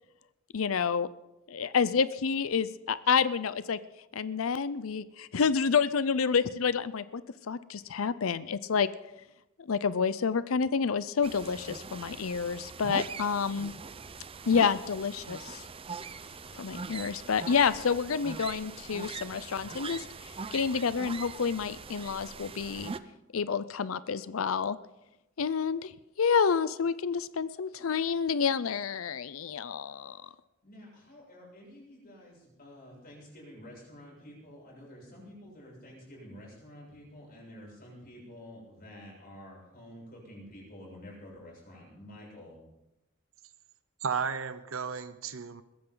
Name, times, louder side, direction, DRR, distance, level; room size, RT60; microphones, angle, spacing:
voice 1, 0.5-1.1 1.5-3.8 4.1-7.2 7.5-8.9 9.7-13.7 14.5-15.6 16.5-20.0 20.5-22.9 23.3-24.8 25.4-25.9 26.2-30.2, left 6 dB, 90° left, 16 dB, 0.6 m, -29 dB
sound 1, 11.2-23.0, right 4 dB, 25° right, 0.6 m, -42 dB
voice 2, 30.6-42.6, left 1 dB, 45° left, -3 dB, 7.3 m, -49 dB
voice 3, 44.0-45.6, right 6 dB, 80° right, 12 dB, 0.8 m, -33 dB
21.5 x 15.5 x 3.9 m, 0.94 s
head